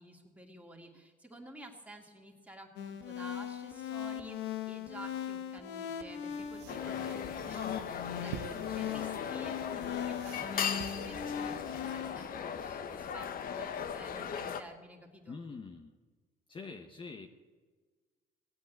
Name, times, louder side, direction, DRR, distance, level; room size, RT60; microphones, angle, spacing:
voice 1, 0.0-15.4, right 1 dB, 10° right, 1 dB, 2.5 m, -51 dB
sound 1, 2.8-12.1, left 9 dB, 85° left, 1.2 m, -39 dB
sound 2, 6.3-12.0, right 10 dB, 90° right, 0.9 m, -50 dB
sound 3, 6.7-14.6, left 7 dB, 55° left, 1.1 m, -38 dB
voice 2, 15.3-15.9 16.5-17.3, left 4 dB, 30° left, 5 dB, 1.0 m, -44 dB
18.0 x 8.4 x 8.3 m, 1.4 s
cardioid pair, 110°, 17 cm